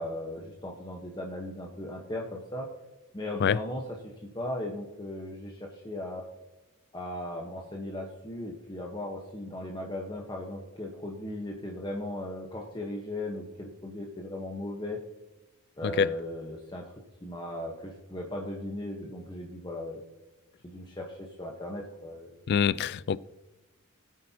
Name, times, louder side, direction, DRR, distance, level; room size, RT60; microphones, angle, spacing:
voice 1, 0.0-2.7 3.1-6.3 6.9-15.0 15.8-16.9 17.2-20.0 20.6-22.4, left 1 dB, 20° left, 1.1 m, -37 dB
voice 2, 22.5-23.2, left 7 dB, 50° left, 0.3 m, -25 dB
20.5 x 8.7 x 2.9 m
head